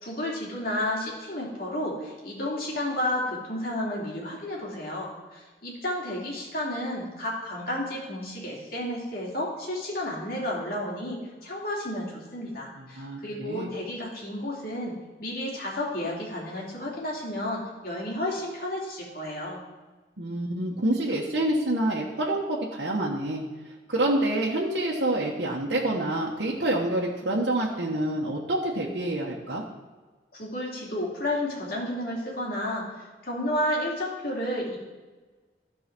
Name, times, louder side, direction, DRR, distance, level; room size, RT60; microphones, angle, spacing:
voice 1, 0.0-19.6 30.3-32.9 33.2-34.8, left 1 dB, 55° left, -4 dB, 2.8 m, -32 dB
voice 2, 12.8-13.7 20.2-23.4 23.9-29.6, right 1 dB, 75° right, -4 dB, 1.2 m, -27 dB
12.5 x 4.8 x 6.0 m, 1.3 s
head